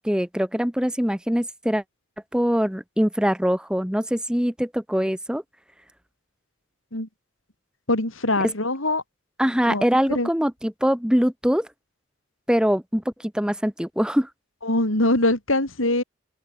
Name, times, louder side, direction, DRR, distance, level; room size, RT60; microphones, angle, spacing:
voice 1, 0.0-1.8 2.3-5.4 8.4-8.5 9.4-11.7 12.5-14.3, equal, 5° right, 1.1 m, -23 dB
voice 2, 7.9-9.0 9.7-9.8 10.1-10.3 14.6-16.0, left 2 dB, 85° left, 7.1 m, -23 dB
head